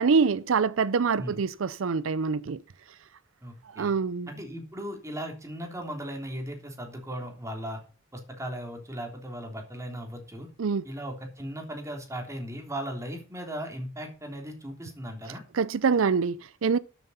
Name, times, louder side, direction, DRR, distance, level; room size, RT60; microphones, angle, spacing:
voice 1, 0.0-2.6 3.7-4.3 10.6-10.8 15.5-16.8, right 5 dB, 80° right, 0.5 m, -25 dB
voice 2, 3.4-3.9 4.3-7.8 8.1-10.5 10.8-15.4, equal, 15° right, 3.3 m, -37 dB
12.5 x 7.4 x 5.6 m
head